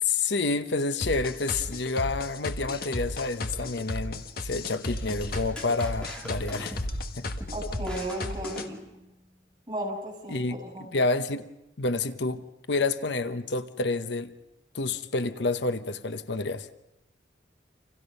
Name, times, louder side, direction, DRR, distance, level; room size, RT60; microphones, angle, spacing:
voice 1, 0.0-6.8 7.2-7.3 10.3-11.5 11.8-14.3 14.7-16.7, left 3 dB, 65° left, 0.9 m, -29 dB
sound 1, 1.0-8.7, left 2 dB, 50° left, 1.6 m, -34 dB
sound 2, 5.1-9.3, equal, 5° left, 3.9 m, -40 dB
voice 2, 7.5-8.8 9.7-10.9, right 1 dB, 20° right, 7.2 m, -35 dB
29.5 x 27.0 x 5.5 m
head